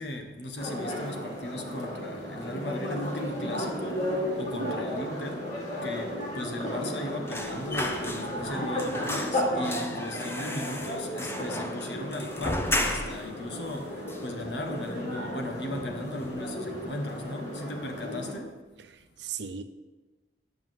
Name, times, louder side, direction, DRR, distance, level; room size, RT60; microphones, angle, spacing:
voice 1, 0.0-5.4 5.8-18.5, left 1 dB, 75° left, 5 dB, 1.5 m, -37 dB
sound 1, 0.6-18.3, equal, 40° left, 2.6 m, -34 dB
sound 2, 7.3-8.5 8.8-13.3 13.7-13.8 14.1-14.9 15.2-15.4 15.7-16.4 16.7-16.9, left 1 dB, 15° left, 0.8 m, -34 dB
voice 2, 18.8-19.6, right 4 dB, 75° right, 9 dB, 0.7 m, -37 dB
9.5 x 6.0 x 7.7 m, 1.2 s
head